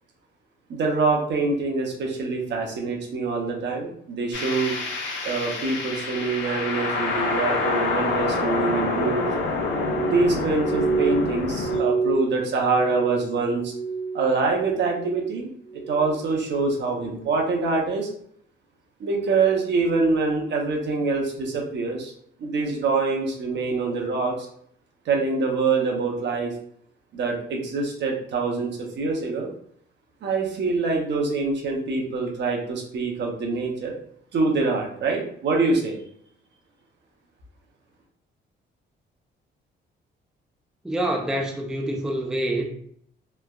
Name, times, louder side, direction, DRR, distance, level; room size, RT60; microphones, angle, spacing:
voice 1, 0.7-4.8 5.2-9.2 10.0-13.7 14.1-15.5 15.9-18.1 19.0-22.1 22.4-24.5 25.1-26.5 27.1-29.5 30.2-33.9 34.3-36.0, right 3 dB, 65° right, 0.8 m, -25 dB
sound 1, 4.3-11.8, left 3 dB, 70° left, 0.6 m, -27 dB
Glass, 9.7-14.3 14.6-15.2 15.6-16.2 16.8-17.0, right 4 dB, 40° left, 0.8 m, -28 dB
voice 2, 40.8-42.7, right 1 dB, 5° right, 0.4 m, -26 dB
3.2 x 2.2 x 2.3 m
cardioid pair, 90°, 20 cm